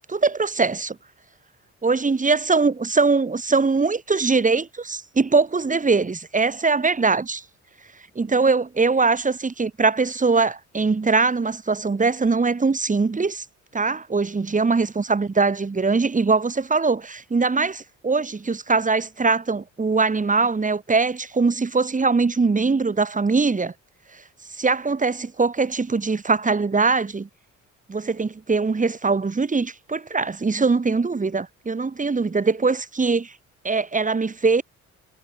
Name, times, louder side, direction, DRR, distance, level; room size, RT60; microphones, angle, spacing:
voice 1, 0.1-0.9 1.8-7.4 8.2-13.4 13.7-23.7 24.6-27.3 27.9-33.3 33.6-34.6, right 4 dB, 25° right, 2.7 m, -22 dB
cardioid pair, 90°, 30 cm